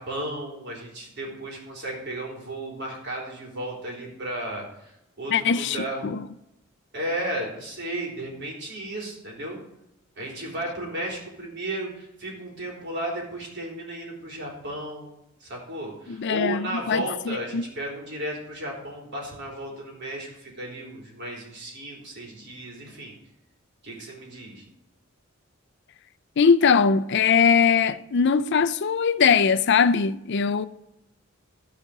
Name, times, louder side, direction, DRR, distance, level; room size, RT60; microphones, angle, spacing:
voice 1, 0.0-6.1 6.9-9.6 10.2-23.1 23.8-24.6, right 1 dB, 55° right, 3.8 m, -34 dB
voice 2, 5.3-5.8 6.0-6.2 16.1-17.6 26.4-30.7, left 6 dB, 60° left, 0.5 m, -21 dB
13.5 x 5.1 x 6.6 m
head